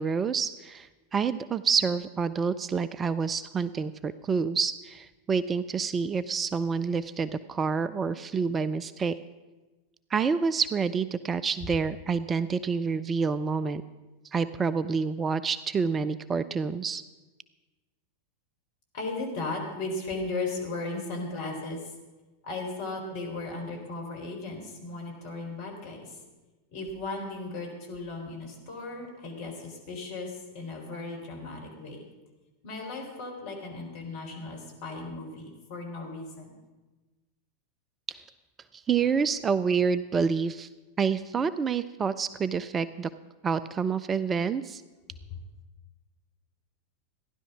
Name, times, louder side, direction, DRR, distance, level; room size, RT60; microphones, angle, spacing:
voice 1, 0.0-9.2 10.1-13.8 14.3-17.0 38.1-38.2 38.7-40.7 41.0-43.1 43.4-44.8, right 5 dB, 20° right, 15 dB, 0.5 m, -28 dB
voice 2, 18.9-21.8 22.4-26.2 26.7-32.0 32.6-36.5 45.3-45.4, left 3 dB, 50° left, 0 dB, 3.9 m, -36 dB
15.5 x 11.0 x 5.9 m, 1.2 s
figure-of-eight pair, 90°, 0 cm